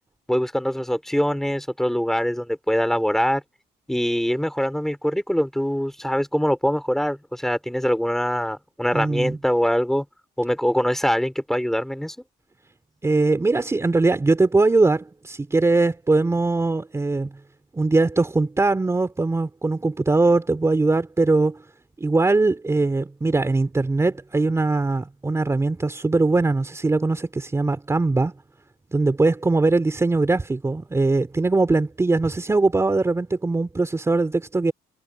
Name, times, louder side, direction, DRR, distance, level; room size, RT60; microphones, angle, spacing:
voice 1, 0.3-3.4 3.9-10.1 10.4-12.2, equal, ahead, 4.0 m, -23 dB
voice 2, 8.9-9.4 13.0-17.3 17.7-21.6 22.0-28.3 28.9-34.7, right 3 dB, 15° right, 2.9 m, -21 dB
cardioid pair, 110°, 17 cm